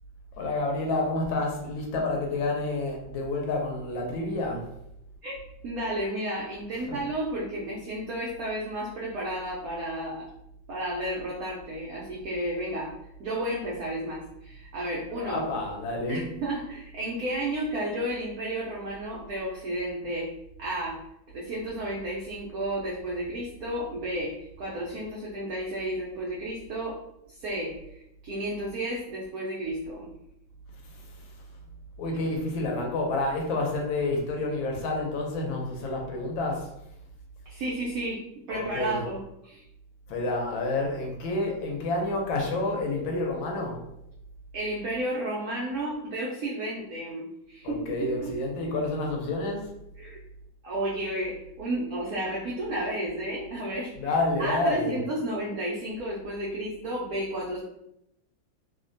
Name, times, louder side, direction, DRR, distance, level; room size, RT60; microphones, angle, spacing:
voice 1, 0.4-4.6 6.9-7.0 15.1-16.2 30.8-31.3 32.0-36.7 38.5-39.1 40.1-43.8 47.6-49.7 53.9-55.0, left 2 dB, 80° left, 1 dB, 1.4 m, -29 dB
voice 2, 5.6-10.3 10.7-12.9 13.2-15.5 16.1-20.3 20.6-21.0 21.3-27.0 27.3-30.1 37.5-38.2 38.5-39.6 44.5-47.9 48.2-48.3 50.0-50.2 50.6-53.9 54.4-57.6, right 1 dB, 90° right, -4 dB, 0.7 m, -32 dB
3.3 x 2.1 x 2.5 m, 0.81 s
omnidirectional pair, 2.2 m